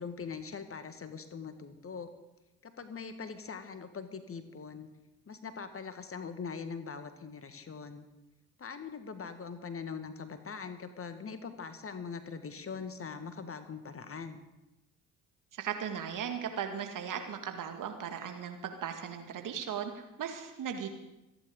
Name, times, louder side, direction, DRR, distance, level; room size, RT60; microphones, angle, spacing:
voice 1, 0.0-2.1 2.6-4.9 5.3-8.1 8.6-14.4, left 5 dB, 30° left, 9 dB, 1.7 m, -42 dB
voice 2, 15.5-20.9, right 8 dB, 50° right, 5 dB, 2.1 m, -37 dB
25.5 x 10.5 x 3.9 m, 0.95 s
figure-of-eight pair, 50°, 42 cm